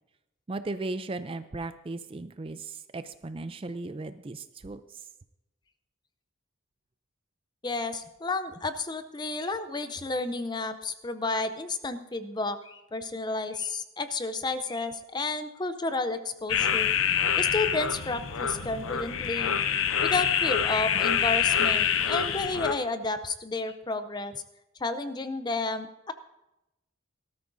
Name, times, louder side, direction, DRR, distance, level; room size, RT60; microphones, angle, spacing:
voice 1, 0.5-5.1, right 2 dB, 25° right, 11 dB, 0.4 m, -36 dB
voice 2, 7.6-16.9 17.4-19.6 20.0-24.4 24.8-26.1, left 3 dB, 20° left, 10 dB, 0.6 m, -31 dB
sound 1, 16.5-22.7, left 8 dB, 70° left, 0.7 m, -26 dB
18.5 x 13.0 x 2.7 m, 0.94 s
head